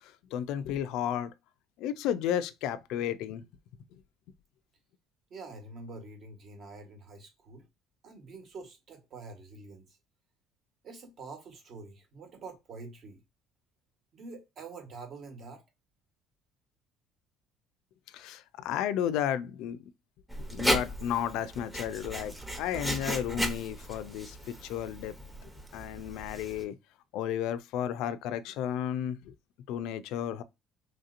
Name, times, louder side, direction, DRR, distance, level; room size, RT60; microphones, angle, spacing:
voice 1, 0.0-1.3 1.8-3.4 18.1-19.8 20.4-25.1 25.4-26.8 27.1-29.3 29.7-30.4, left 10 dB, 70° left, 0.3 m, -33 dB
voice 2, 5.3-7.6 8.0-10.0 10.8-13.2 14.1-15.6, right 3 dB, 45° right, 1.1 m, -46 dB
Writing, 20.3-26.6, equal, 5° right, 0.7 m, -35 dB
3.1 x 2.8 x 2.5 m
cardioid pair, 125°, 0 cm